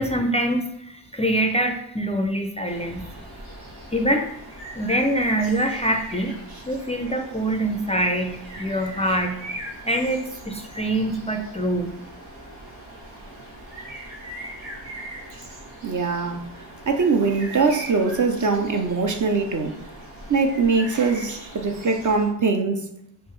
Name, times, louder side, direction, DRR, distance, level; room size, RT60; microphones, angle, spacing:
voice 1, 0.0-3.1 3.9-6.4 6.7-11.9, right 1 dB, 15° left, 0.4 m, -25 dB
sound 1, 2.6-22.3, right 1 dB, 85° right, 1.1 m, -40 dB
voice 2, 15.8-16.4 16.9-19.8 20.3-22.9, right 4 dB, 40° right, 0.6 m, -22 dB
3.6 x 2.5 x 3.3 m
cardioid pair, 40°, 46 cm